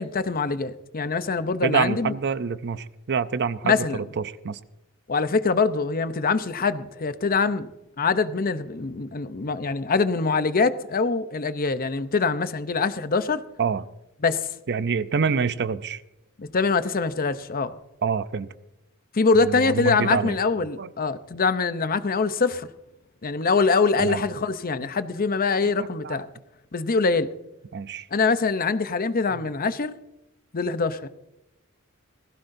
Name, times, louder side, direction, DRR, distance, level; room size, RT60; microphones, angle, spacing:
voice 1, 0.0-2.1 3.6-4.0 5.1-7.7 8.0-13.4 14.2-14.5 16.4-17.8 19.1-22.7 23.2-26.3 26.7-27.3 28.1-29.9 30.5-31.1, left 4 dB, 45° left, 0.7 m, -24 dB
voice 2, 1.6-4.6 13.6-13.9 14.7-16.0 18.0-18.5 19.3-20.4 20.8-20.9 24.0-24.2 26.0-26.2 27.7-28.1 29.3-29.4, right 5 dB, 55° right, 0.6 m, -26 dB
18.5 x 16.0 x 2.7 m
head